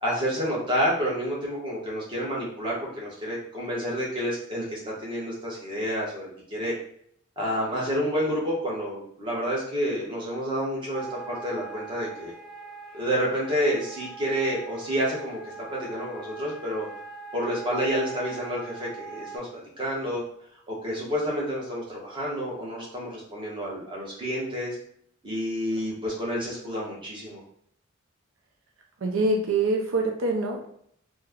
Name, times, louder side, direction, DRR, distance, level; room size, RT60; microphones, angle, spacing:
voice 1, 0.0-6.7 7.4-12.3 12.9-16.9 17.3-19.5 19.8-20.2 20.7-24.8 25.2-27.4, equal, 25° right, -5 dB, 1.0 m, -29 dB
sound 1, 10.9-19.4, right 4 dB, 5° left, 0.6 m, -42 dB
voice 2, 29.0-30.7, right 2 dB, 80° right, 2 dB, 0.5 m, -25 dB
3.2 x 2.1 x 3.5 m, 0.67 s
head